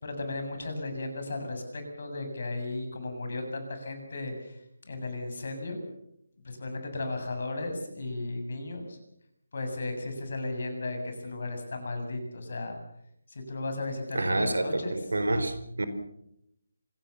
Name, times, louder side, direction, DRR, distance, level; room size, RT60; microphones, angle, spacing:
voice 1, 0.0-5.8 6.4-9.0 9.5-12.8 13.3-15.0, left 2 dB, 55° left, 6 dB, 7.5 m, -35 dB
voice 2, 14.1-15.5 15.8-15.9, right 2 dB, 70° right, 10 dB, 4.3 m, -27 dB
26.5 x 18.0 x 7.1 m, 0.78 s
figure-of-eight pair, 150°, 0 cm